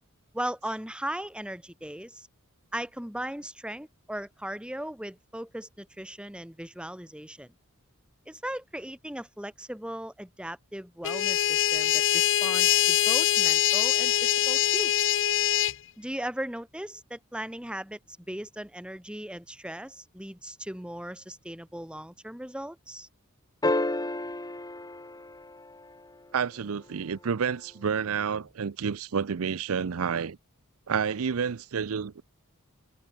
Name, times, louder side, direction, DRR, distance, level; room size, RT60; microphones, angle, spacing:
voice 1, 0.3-2.3 2.7-7.5 8.3-15.2 16.0-23.1, right 1 dB, 5° right, 2.6 m, -38 dB
sound 1, 11.0-15.7, left 12 dB, 55° left, 0.8 m, -23 dB
sound 2, 23.6-26.2 28.4-28.5, left 2 dB, 15° left, 1.6 m, -31 dB
voice 2, 26.3-30.4 30.9-32.2, right 6 dB, 70° right, 0.5 m, -29 dB
head